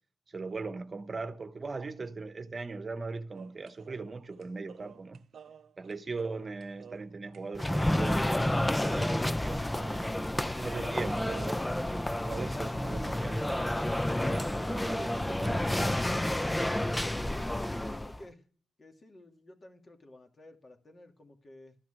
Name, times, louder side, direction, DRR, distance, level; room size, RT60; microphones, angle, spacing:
voice 1, 0.3-5.2 5.8-10.1 10.6-16.0, right 3 dB, 40° right, 1.0 m, -40 dB
sound 1, 3.3-7.4 7.7-8.9 9.2-10.5 10.7-13.1 13.4-13.5 13.7-14.9, right 7 dB, 70° right, 0.5 m, -51 dB
sound 2, 7.6-18.2, left 1 dB, 15° left, 0.5 m, -30 dB
voice 2, 17.5-18.4 18.8-21.8, left 2 dB, 40° left, 2.4 m, -52 dB
13.5 x 6.0 x 7.5 m
cardioid pair, 65°, 0 cm